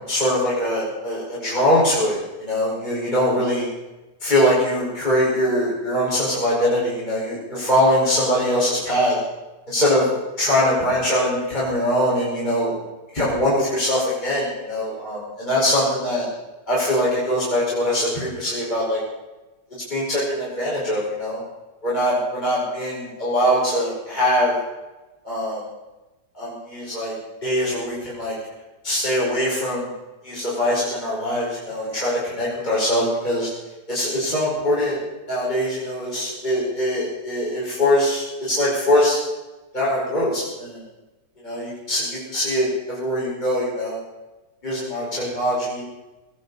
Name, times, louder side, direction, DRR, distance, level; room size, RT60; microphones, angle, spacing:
voice 1, 0.0-3.7 4.2-9.2 9.7-12.8 13.1-16.3 16.7-19.0 19.9-21.4 21.8-24.6 25.2-25.6 26.3-27.1 27.4-28.3 28.8-29.9 30.2-33.5 33.9-35.0 35.3-39.2 39.7-40.8 41.4-44.0 44.6-45.8, left 1 dB, 25° left, -7 dB, 5.5 m, -22 dB
20.5 x 16.0 x 4.2 m, 1.1 s
omnidirectional pair, 1.8 m